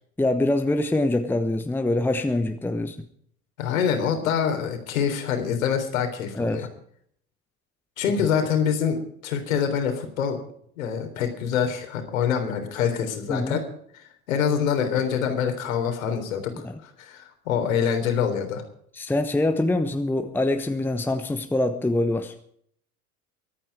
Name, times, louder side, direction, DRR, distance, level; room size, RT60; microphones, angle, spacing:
voice 1, 0.2-3.0 6.3-6.7 13.3-13.6 16.6-16.8 18.9-22.3, left 2 dB, 5° left, 8 dB, 1.0 m, -24 dB
voice 2, 3.6-6.7 8.0-10.4 10.8-13.6 13.9-18.6, left 7 dB, 60° left, 5 dB, 3.6 m, -25 dB
23.5 x 9.1 x 4.8 m, 0.64 s
figure-of-eight pair, 75°, 45 cm